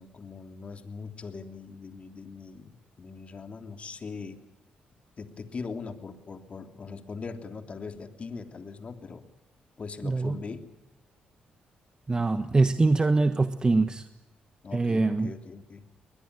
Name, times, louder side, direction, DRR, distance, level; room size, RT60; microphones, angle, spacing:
voice 1, 0.0-4.4 5.2-9.2 9.8-10.7 14.6-15.8, left 4 dB, 45° left, 7 dB, 3.2 m, -41 dB
voice 2, 10.0-10.4 12.1-14.1 14.7-15.3, right 3 dB, 25° right, 10 dB, 1.4 m, -23 dB
21.5 x 21.0 x 9.8 m, 0.93 s
cardioid pair, 70°, 3 cm